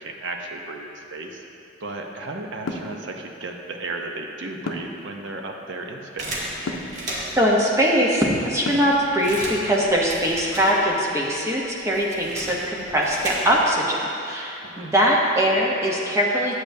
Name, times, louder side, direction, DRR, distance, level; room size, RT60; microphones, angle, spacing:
voice 1, 0.0-1.4 1.8-6.5 14.6-14.9, right 2 dB, 65° right, 2 dB, 0.6 m, -34 dB
sound 1, 2.7-3.0 4.7-5.0 6.7-7.0 8.6-9.0, left 2 dB, 80° left, 0.5 m, -30 dB
sound 2, 6.2-7.5 8.2-8.3 8.5-11.2 11.4-13.8, right 1 dB, 35° right, 1.1 m, -35 dB
voice 2, 7.3-16.5, equal, 15° right, -3 dB, 0.7 m, -21 dB
8.4 x 7.8 x 2.6 m, 2.8 s
head